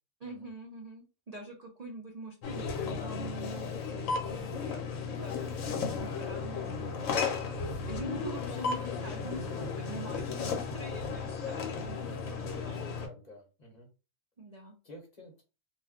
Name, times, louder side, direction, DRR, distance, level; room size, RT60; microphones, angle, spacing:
voice 1, 0.2-4.8 5.1-7.2 7.9-12.9 14.4-14.7, right 2 dB, 60° right, 1 dB, 0.4 m, -45 dB
sound 1, 2.4-13.1, left 5 dB, 75° left, 1.0 m, -35 dB
voice 2, 12.4-13.9 14.8-15.4, left 1 dB, 35° left, 0 dB, 0.9 m, -50 dB
2.4 x 2.2 x 3.5 m, 0.31 s
omnidirectional pair, 1.4 m